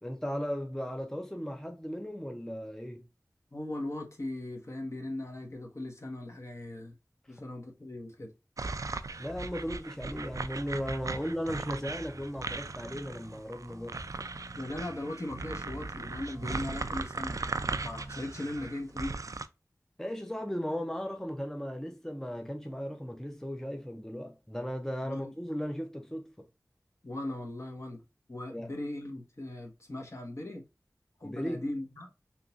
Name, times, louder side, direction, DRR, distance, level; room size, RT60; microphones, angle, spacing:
voice 1, 0.0-3.1 7.3-7.4 9.2-14.0 20.0-26.5 28.5-28.7 31.2-31.7, equal, 5° left, 0.5 m, -36 dB
voice 2, 3.5-7.0 7.3-8.3 11.2-11.3 14.5-17.4 17.8-19.2 25.0-25.3 27.0-28.0 28.3-30.6 31.2-32.1, left 1 dB, 50° left, 1.1 m, -38 dB
sound 1, 8.6-9.8 10.1-11.5 11.9-13.3 13.7-15.1 15.5-16.9 17.2-18.7 19.0-19.1, right 1 dB, 30° right, 0.7 m, -48 dB
sound 2, 8.6-19.5, right 3 dB, 60° right, 0.3 m, -38 dB
3.7 x 2.9 x 2.4 m
wide cardioid pair, 50°, 6 cm